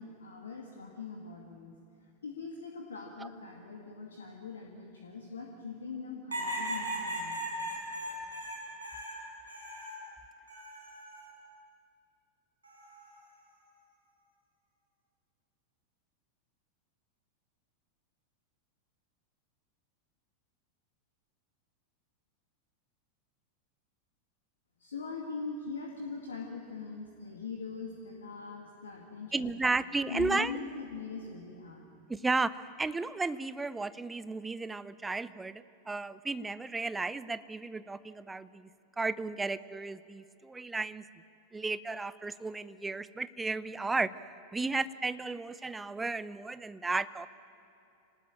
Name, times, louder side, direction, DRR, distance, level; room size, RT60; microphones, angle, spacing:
voice 1, 0.0-1.8 2.2-7.4 24.8-29.5 30.1-31.9, left 4 dB, 70° left, 1 dB, 2.2 m, -42 dB
sound 1, 6.3-10.0 10.5-11.3 12.6-13.1, right 1 dB, 75° right, 6.3 m, -38 dB
voice 2, 29.3-30.6 32.1-38.7 39.0-41.1 41.5-44.1 44.5-47.3, right 3 dB, 10° right, 16 dB, 0.7 m, -34 dB
26.0 x 19.0 x 8.8 m, 2.9 s
figure-of-eight pair, 90°, 0 cm